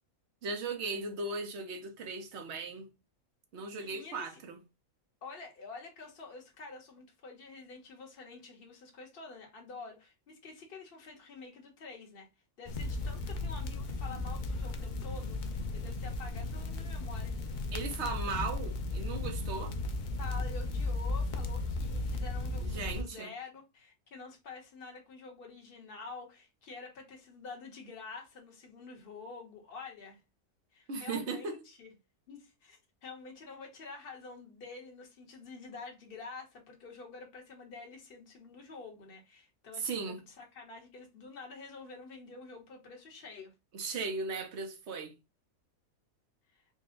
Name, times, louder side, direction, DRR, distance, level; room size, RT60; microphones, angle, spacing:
voice 1, 0.4-2.9 3.5-4.6 17.7-19.8 22.6-23.3 30.9-31.6 39.8-40.2 43.7-45.1, right 4 dB, 55° right, 1.0 m, -37 dB
voice 2, 3.8-4.4 5.2-12.3 12.6-17.4 20.2-30.2 30.7-31.9 32.3-43.5 46.5-46.6, left 4 dB, 45° left, 1.2 m, -48 dB
sound 1, 12.7-23.0, left 2 dB, 65° left, 0.4 m, -35 dB
4.2 x 2.2 x 3.7 m
omnidirectional pair, 1.5 m